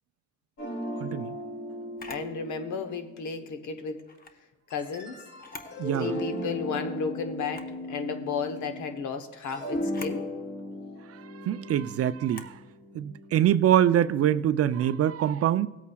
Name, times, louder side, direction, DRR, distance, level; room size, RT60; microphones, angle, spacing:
sound 1, 0.6-3.7 4.7-9.0 9.3-13.5, equal, 55° left, 3.0 m, -37 dB
voice 1, 1.0-1.4 5.8-6.2 11.4-12.5 12.9-15.7, right 11 dB, 50° right, 0.4 m, -24 dB
Camera, 2.0-2.3 4.0-4.4 5.3-5.8 6.2-6.3 7.4-7.8 9.8-10.2 12.2-12.6, left 3 dB, 30° left, 0.9 m, -44 dB
voice 2, 2.1-4.0 4.7-5.2 5.9-10.3, left 5 dB, 75° left, 1.0 m, -33 dB
18.0 x 8.3 x 2.3 m
cardioid pair, 90°, 30 cm